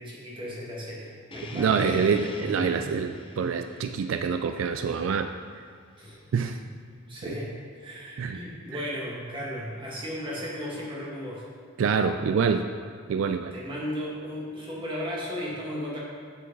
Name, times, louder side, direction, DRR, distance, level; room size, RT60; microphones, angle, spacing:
voice 1, 0.0-2.2 6.0-6.2 7.1-11.5 13.5-16.0, equal, 25° right, -5 dB, 1.9 m, -35 dB
sound 1, 1.3-6.4, left 2 dB, 25° left, 0.7 m, -44 dB
voice 2, 1.5-5.3 6.3-6.6 7.3-7.4 8.2-8.4 11.8-12.7 13.1-13.5, right 6 dB, 80° right, 8 dB, 0.4 m, -26 dB
8.3 x 7.5 x 4.0 m, 2.1 s
head